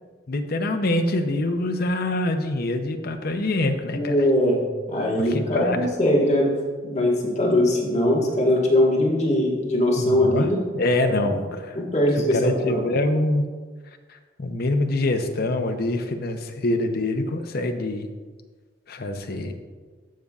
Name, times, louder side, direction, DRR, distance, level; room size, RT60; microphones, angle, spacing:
voice 1, 0.3-4.1 5.3-5.8 10.0-10.5 10.7-11.8 12.1-13.5 14.1-18.1 18.9-19.5, left 2 dB, 50° left, 6 dB, 0.6 m, -25 dB
voice 2, 3.9-4.6 4.9-6.5 6.8-10.7 11.1-11.4 11.7-12.8, left 1 dB, 35° left, -3 dB, 1.5 m, -21 dB
14.0 x 5.3 x 2.4 m, 1.5 s
head